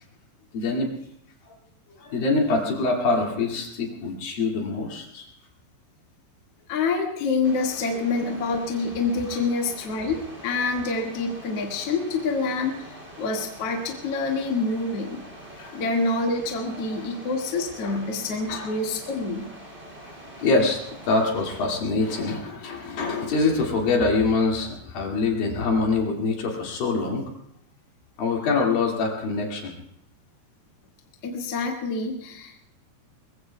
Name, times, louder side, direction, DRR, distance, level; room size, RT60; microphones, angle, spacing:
voice 1, 0.5-0.9 2.0-5.3 9.3-9.4 15.6-15.8 16.7-17.1 17.8-18.0 18.5-18.7 20.4-27.2 28.2-29.7, left 3 dB, 65° left, -1 dB, 3.9 m, -25 dB
voice 2, 6.7-12.9 13.2-15.2 15.7-19.4 31.2-32.6, left 3 dB, 45° left, -1 dB, 2.3 m, -27 dB
sound 1, 7.4-21.7, right 1 dB, 15° right, 2.5 m, -44 dB
22.5 x 22.0 x 2.3 m, 0.73 s
omnidirectional pair, 4.7 m